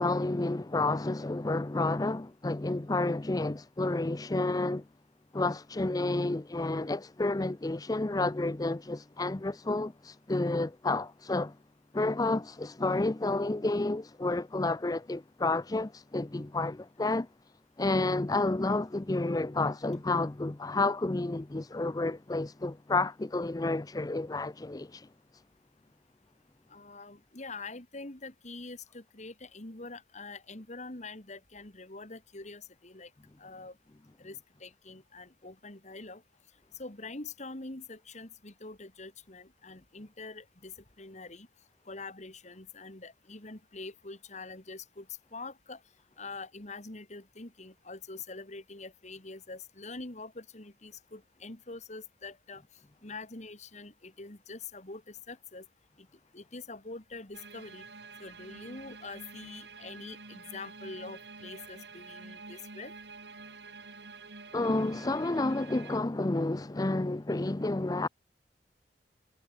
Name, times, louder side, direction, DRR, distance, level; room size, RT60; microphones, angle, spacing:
voice 1, 0.0-4.8 5.3-11.6 11.9-17.3 17.8-25.1 64.5-68.1, left 2 dB, 20° left, 0.5 m, -30 dB
voice 2, 26.7-33.1 33.4-33.7 34.2-36.2 36.8-41.5 41.9-45.8 46.2-52.6 53.0-55.6 56.0-56.1 56.3-57.8 58.2-62.9, left 3 dB, 40° left, 2.6 m, -45 dB
sound 1, 57.3-66.0, right 4 dB, 70° right, 3.3 m, -48 dB
head